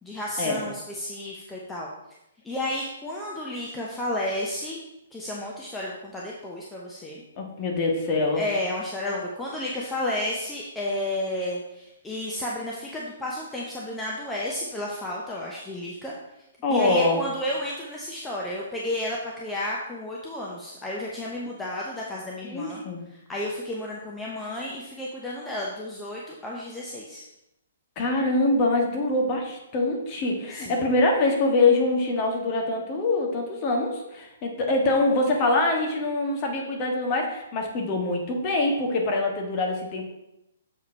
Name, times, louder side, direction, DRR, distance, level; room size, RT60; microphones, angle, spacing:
voice 1, 0.0-1.9 2.4-4.8 5.1-7.2 8.3-16.1 16.7-22.8 23.3-27.2 30.5-30.7, left 1 dB, 10° left, -4 dB, 0.9 m, -32 dB
voice 2, 7.4-8.4 16.6-17.2 22.4-23.0 27.9-40.0, left 2 dB, 30° left, 1 dB, 1.6 m, -24 dB
7.2 x 4.8 x 4.7 m, 0.87 s
figure-of-eight pair, 125°, 0 cm